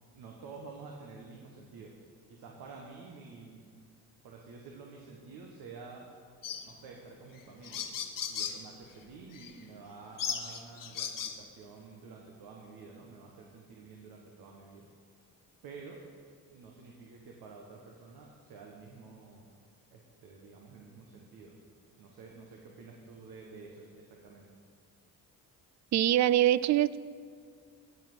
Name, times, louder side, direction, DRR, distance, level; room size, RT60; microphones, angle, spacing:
voice 1, 0.1-1.9 2.3-3.7 4.2-6.0 6.6-8.0 8.3-14.9 15.6-16.0 16.5-19.4 19.9-21.5 22.0-24.5, right 4 dB, 85° right, 0 dB, 1.4 m, -50 dB
sound 1, 6.4-6.7 7.4-7.5 7.6-8.6 9.3-9.5 10.2-11.4, left 7 dB, 60° left, 1.1 m, -36 dB
voice 2, 25.9-27.0, right 13 dB, 50° right, 18 dB, 0.4 m, -24 dB
15.5 x 5.7 x 6.1 m, 2.1 s
cardioid pair, 70°, 36 cm